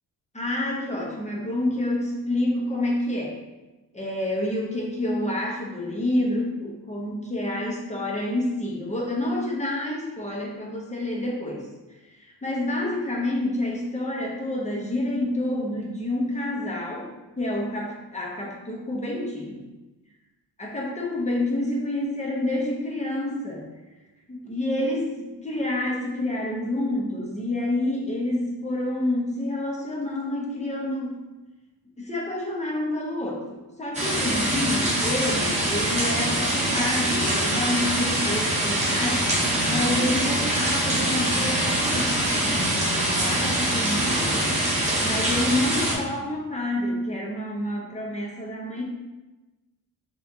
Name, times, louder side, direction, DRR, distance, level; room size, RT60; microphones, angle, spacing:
voice 1, 0.3-3.4 3.9-11.6 12.2-17.1 17.4-19.6 20.6-23.7 24.3-31.2 32.0-39.3 39.7-42.2 42.5-44.6 45.0-48.8, left 1 dB, 20° left, -2 dB, 0.8 m, -28 dB
sound 1, 33.9-45.9, right 1 dB, 20° right, 1.0 m, -24 dB
5.5 x 3.0 x 2.7 m, 1.1 s
wide cardioid pair, 140°, 38 cm